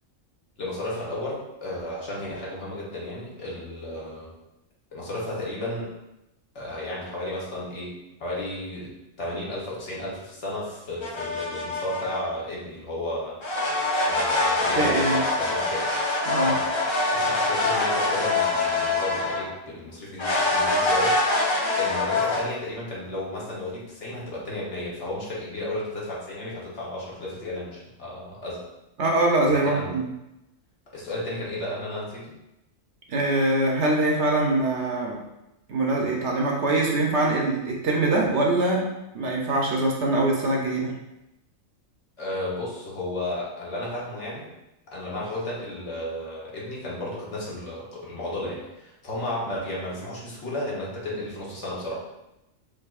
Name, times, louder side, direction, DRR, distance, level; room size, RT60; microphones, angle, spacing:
voice 1, 0.6-4.3 4.9-5.9 6.5-13.4 14.0-15.9 16.4-16.7 17.1-21.2 21.7-28.6 29.4-30.0 30.9-32.4 42.2-44.5 44.9-51.9, left 1 dB, 65° left, -5 dB, 1.3 m, -33 dB
sound 1, 11.0-12.2 13.4-19.5 20.2-22.4, left 2 dB, 35° left, 0.5 m, -24 dB
voice 2, 14.8-15.2 16.3-16.6 29.0-30.0 33.1-35.2 35.7-38.9 39.1-40.9, right 2 dB, 65° right, -1 dB, 0.9 m, -23 dB
4.7 x 2.6 x 2.3 m, 0.92 s
omnidirectional pair, 1.3 m